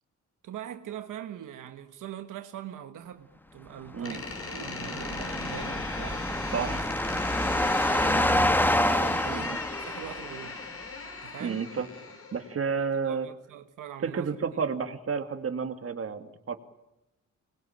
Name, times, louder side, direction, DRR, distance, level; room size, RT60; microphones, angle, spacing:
voice 1, 0.4-7.3 7.7-10.7 11.2-11.7 12.8-14.6, right 10 dB, 90° right, 1.5 m, -42 dB
Door, 4.0-12.5, left 3 dB, 45° left, 5.9 m, -39 dB
sound 1, 4.1-10.5, left 1 dB, 5° left, 1.2 m, -27 dB
voice 2, 11.4-11.9 12.3-13.3 14.0-16.6, right 6 dB, 50° right, 2.5 m, -31 dB
25.5 x 21.5 x 8.9 m
cardioid pair, 100°, 30 cm